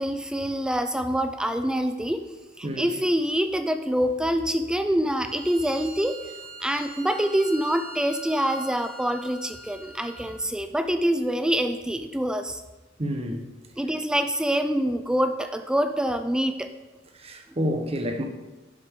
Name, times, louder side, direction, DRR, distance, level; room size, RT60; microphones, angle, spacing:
voice 1, 0.0-2.2 2.6-6.2 6.6-12.6 13.8-16.7, equal, 5° right, 0.4 m, -25 dB
Bowed string instrument, 5.1-10.4, right 1 dB, 60° left, 2.1 m, -43 dB
voice 2, 13.0-13.4 17.2-18.2, equal, 35° right, 1.1 m, -28 dB
10.5 x 8.0 x 3.7 m
head